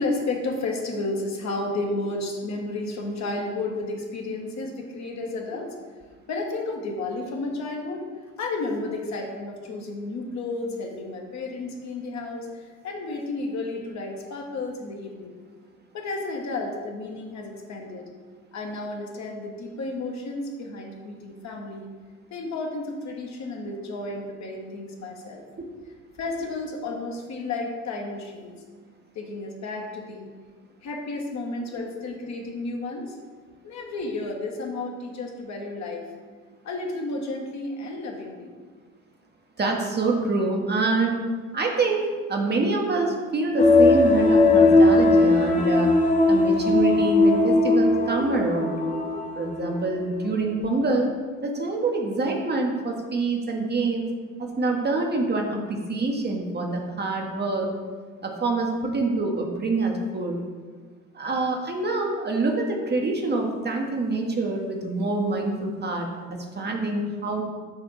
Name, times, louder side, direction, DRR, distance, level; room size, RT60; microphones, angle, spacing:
voice 1, 0.0-5.7 6.3-8.0 8.4-12.5 12.8-15.4 15.9-18.1 18.5-21.9 22.3-25.4 26.2-28.5 29.1-30.3 30.8-33.2 33.6-36.1 36.6-38.5, left 2 dB, 40° left, 1 dB, 1.1 m, -32 dB
voice 2, 39.6-41.2 41.5-45.9 46.3-48.8 49.4-51.1 51.4-54.1 54.4-57.7 58.2-60.4 61.1-67.4, right 3 dB, 25° right, 1 dB, 0.9 m, -26 dB
sound 1, 43.6-49.8 50.2-50.3, left 2 dB, 20° left, 0.6 m, -19 dB
6.7 x 3.4 x 4.6 m, 1.5 s
figure-of-eight pair, 55°, 42 cm